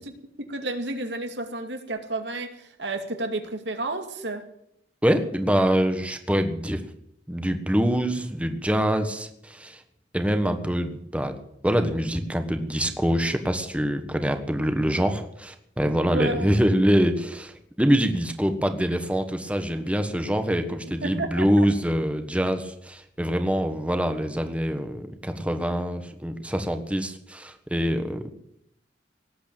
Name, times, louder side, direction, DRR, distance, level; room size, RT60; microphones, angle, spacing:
voice 1, 0.5-4.4 16.1-16.6 21.0-21.3 21.6-21.7, right 2 dB, 75° right, 6 dB, 2.4 m, -31 dB
voice 2, 5.0-6.9 7.3-9.8 10.1-11.4 11.6-28.2, equal, 5° right, 7 dB, 1.4 m, -25 dB
18.5 x 8.4 x 8.8 m, 0.74 s
head